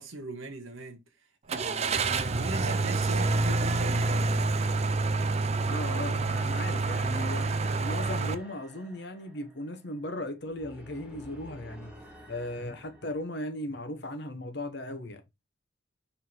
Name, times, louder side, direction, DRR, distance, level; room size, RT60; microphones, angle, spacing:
voice 1, 0.0-4.5, right 2 dB, 80° right, 1.5 m, -40 dB
Car / Engine starting, 1.5-8.3, right 3 dB, 30° right, 0.5 m, -27 dB
voice 2, 5.6-7.5 7.8-11.9 12.3-15.2, left 1 dB, 55° left, 1.3 m, -37 dB
sound 1, 6.5-13.2, equal, 5° right, 1.3 m, -51 dB
5.7 x 3.7 x 4.7 m
head